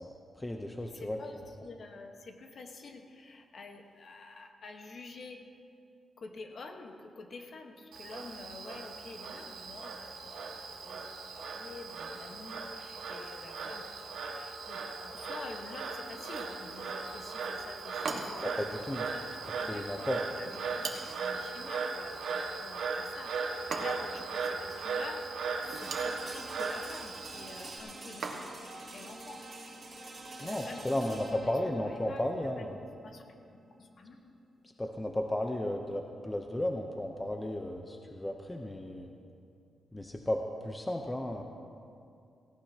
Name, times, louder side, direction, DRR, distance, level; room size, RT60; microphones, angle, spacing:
voice 1, 0.0-1.2 18.4-19.0 19.7-20.2 30.4-32.8 34.8-39.1 39.9-40.4 40.6-41.4, left 1 dB, 10° left, 3 dB, 0.7 m, -34 dB
voice 2, 0.8-5.4 6.2-19.9 20.3-20.9 21.2-29.5 30.4-32.2 32.6-32.7 33.0-33.2 33.5-34.3, left 3 dB, 45° left, 4 dB, 1.2 m, -48 dB
Frog, 7.9-27.8, right 4 dB, 80° right, 1.6 m, -38 dB
sound 1, 16.2-16.6 18.0-18.6 20.8-21.3 23.7-24.2 25.7-26.2 28.2-28.7, right 4 dB, 55° right, 1.4 m, -39 dB
sound 2, 25.6-35.5, right 2 dB, 35° right, 3.3 m, -48 dB
17.5 x 17.0 x 2.9 m, 2.5 s
wide cardioid pair, 145°, 0 cm